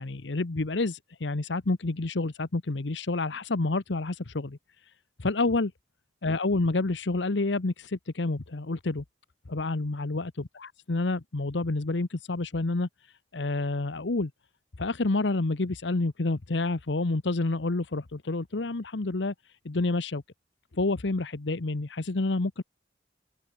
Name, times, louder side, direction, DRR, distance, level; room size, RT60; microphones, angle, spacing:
voice 1, 0.0-4.9 5.2-5.7 6.2-9.0 9.5-14.3 14.8-20.2 20.7-22.6, left 2 dB, 80° left, 1.0 m, -29 dB
open air
head